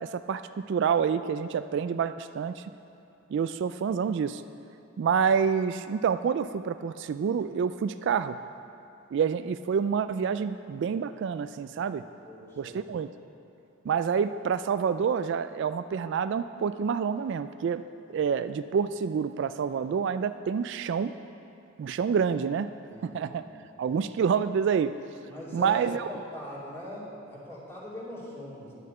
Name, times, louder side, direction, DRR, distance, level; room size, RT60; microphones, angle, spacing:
voice 1, 0.0-2.6 3.3-4.4 5.0-8.4 9.1-12.0 12.6-13.1 13.9-17.8 18.1-21.1 21.8-22.7 23.0-23.4 23.8-24.9 25.5-26.0, right 6 dB, 65° right, 12 dB, 0.3 m, -27 dB
voice 2, 12.2-12.8 18.1-18.2 22.9-24.1 25.2-28.7, equal, 10° left, -7 dB, 2.9 m, -41 dB
11.0 x 6.6 x 8.7 m, 2.7 s
head